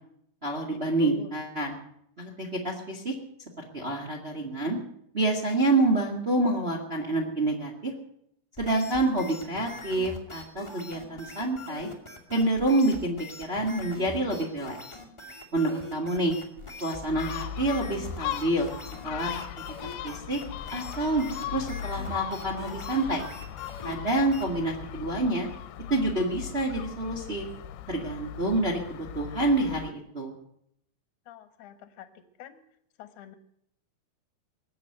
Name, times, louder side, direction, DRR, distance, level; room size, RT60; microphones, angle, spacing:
voice 1, 0.4-1.7 2.2-3.1 3.7-4.8 5.1-7.9 8.6-11.9 12.3-14.8 15.5-16.4 16.8-18.7 19.0-19.4 20.0-20.4 20.7-23.2 23.8-25.5 25.9-27.5 27.9-30.3, right 2 dB, 70° right, 1 dB, 0.6 m, -27 dB
voice 2, 1.0-1.3 31.3-32.1 32.4-32.6 33.0-33.4, left 8 dB, 60° left, 10 dB, 2.3 m, -45 dB
sound 1, 8.6-24.7, left 3 dB, 15° left, 1.0 m, -43 dB
Gull seagull, 17.1-29.9, left 11 dB, 80° left, 2.6 m, -38 dB
21.0 x 8.7 x 7.9 m, 0.71 s
omnidirectional pair, 5.0 m